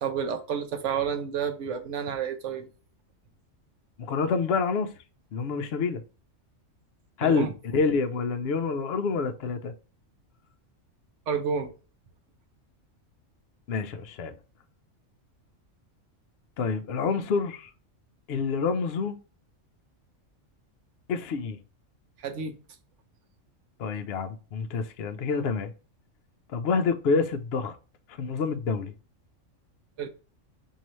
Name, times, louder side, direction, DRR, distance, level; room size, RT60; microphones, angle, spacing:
voice 1, 0.0-2.7 7.2-7.5 11.3-11.7 22.2-22.6 30.0-30.1, right 7 dB, 70° right, 1.1 m, -30 dB
voice 2, 4.0-4.9 5.3-6.0 7.2-9.7 13.7-14.3 16.6-17.7 18.3-19.2 21.1-21.6 23.8-25.7 26.5-27.7 28.2-28.9, left 5 dB, 60° left, 0.8 m, -27 dB
4.8 x 2.7 x 3.0 m
omnidirectional pair, 1.3 m